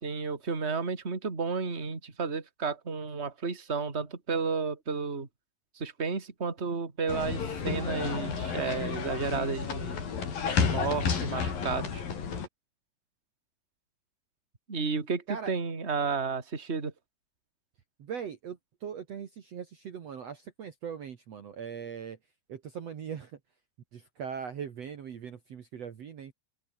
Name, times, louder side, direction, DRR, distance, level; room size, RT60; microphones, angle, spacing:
voice 1, 0.0-5.3 5.7-10.0 10.6-12.0 14.7-16.9, right 5 dB, 20° right, 2.9 m, -32 dB
sound 1, 7.1-12.5, left 6 dB, 75° left, 5.8 m, -31 dB
voice 2, 18.0-22.2 22.5-23.4 23.9-26.3, right 7 dB, 50° right, 2.6 m, -40 dB
omnidirectional pair, 4.1 m